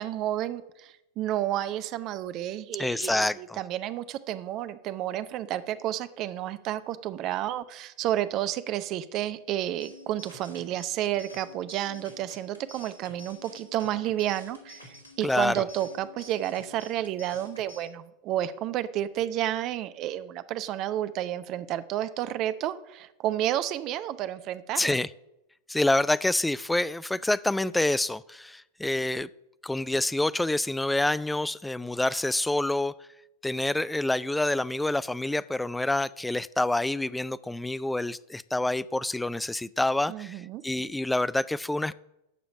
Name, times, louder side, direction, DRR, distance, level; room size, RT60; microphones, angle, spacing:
voice 1, 0.0-25.0 40.1-40.6, right 12 dB, 35° right, 13 dB, 0.7 m, -31 dB
voice 2, 2.8-3.6 15.2-15.7 24.8-25.1 25.7-29.3 29.6-32.9 33.4-41.9, left 2 dB, 5° left, 18 dB, 0.3 m, -27 dB
sound 1, 9.8-17.8, left 2 dB, 85° left, 2.5 m, -49 dB
13.5 x 5.1 x 7.1 m, 0.89 s
figure-of-eight pair, 90°, 0 cm